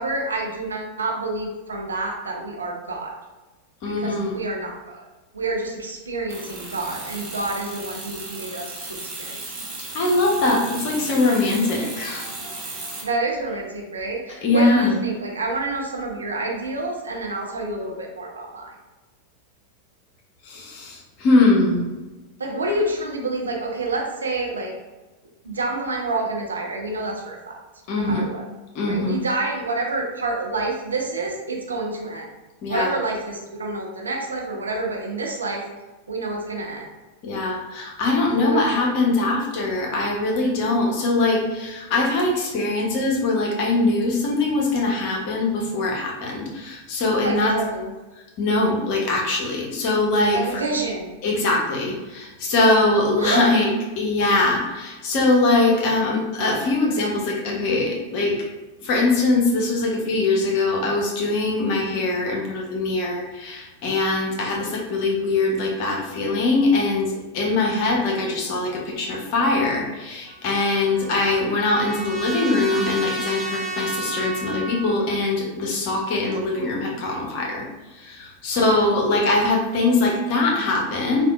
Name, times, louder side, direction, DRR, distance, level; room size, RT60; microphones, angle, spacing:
voice 1, 0.0-3.1 3.8-5.1 5.3-9.7 13.0-18.7 22.4-24.7 25.4-27.6 27.9-28.4 28.9-32.3 32.7-35.6 36.1-36.9 38.4-38.8 47.2-47.9 50.3-51.2 53.2-53.7 54.4-54.6 78.5-78.9, right 2 dB, 75° right, 0 dB, 0.5 m, -28 dB
voice 2, 3.8-4.4 9.9-12.3 14.4-15.0 20.4-21.9 27.9-28.3 28.7-29.2 32.6-32.9 37.2-47.5 48.4-50.4 51.2-53.7 54.0-58.5 58.8-77.7 77.9-81.3, left 2 dB, 45° left, -1 dB, 0.7 m, -22 dB
sound 1, 6.3-13.0, right 2 dB, 35° right, 0.8 m, -35 dB
Trumpet, 70.3-75.0, right 2 dB, 10° left, 0.5 m, -32 dB
3.5 x 2.3 x 2.3 m, 1.1 s
figure-of-eight pair, 90°, 0 cm